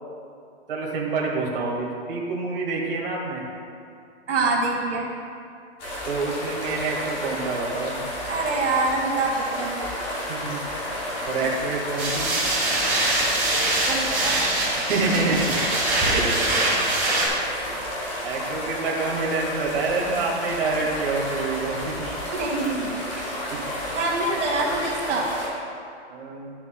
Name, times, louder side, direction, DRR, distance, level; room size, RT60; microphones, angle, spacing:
voice 1, 0.7-3.4 6.0-8.1 10.3-10.6 11.3-12.3 14.9-15.6 16.0-16.3 18.2-22.1 23.5-23.6 26.1-26.5, right 3 dB, 50° right, -3 dB, 1.8 m, -27 dB
voice 2, 4.3-5.1 8.3-9.8 13.8-14.4 16.5-16.9 22.3-23.3 23.9-25.3, right 3 dB, 80° right, -2 dB, 1.6 m, -26 dB
sound 1, 5.8-25.5, equal, 15° left, 0.7 m, -32 dB
sound 2, 12.0-17.3, right 2 dB, 5° right, 1.7 m, -23 dB
12.5 x 6.9 x 2.2 m, 2.5 s
hypercardioid pair, 170°, 35 cm